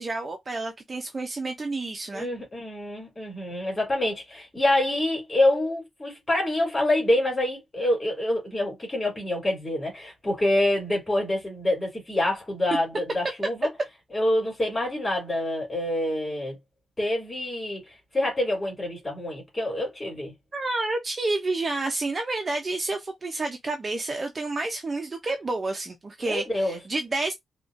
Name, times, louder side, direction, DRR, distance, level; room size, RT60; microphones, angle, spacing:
voice 1, 0.0-2.3 20.5-27.3, right 2 dB, 25° right, 0.4 m, -29 dB
voice 2, 2.1-13.7 14.1-16.6 17.0-20.3 26.2-26.8, left 1 dB, 20° left, 2.2 m, -26 dB
3.8 x 2.2 x 2.4 m
wide cardioid pair, 165°, 0 cm